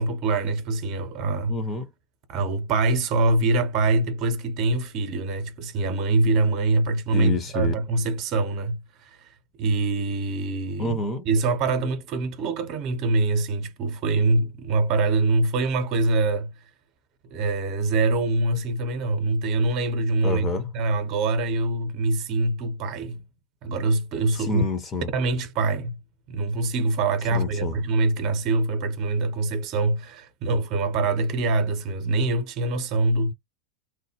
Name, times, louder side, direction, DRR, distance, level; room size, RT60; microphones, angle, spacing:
voice 1, 0.0-1.6 2.3-9.3 9.6-11.0 11.3-16.5 17.3-23.2 23.6-24.6 25.1-26.0 26.3-33.3, right 3 dB, 40° right, 0.8 m, -24 dB
voice 2, 1.5-1.8 7.1-7.7 10.8-11.2 20.2-20.7 24.5-25.1 27.3-27.8, left 3 dB, 20° left, 0.8 m, -28 dB
3.1 x 2.1 x 3.3 m
figure-of-eight pair, 90°, 0 cm